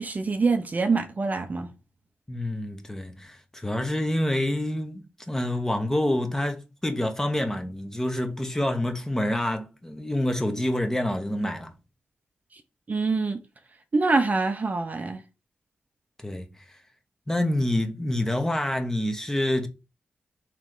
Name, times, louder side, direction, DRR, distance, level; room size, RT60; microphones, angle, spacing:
voice 1, 0.0-1.7 12.9-13.4 13.9-15.2, right 3 dB, 40° right, 0.6 m, -25 dB
voice 2, 2.3-11.7 16.2-16.5 17.3-19.7, left 1 dB, 15° left, 0.8 m, -27 dB
3.2 x 3.0 x 3.8 m
cardioid pair, 60°, 4 cm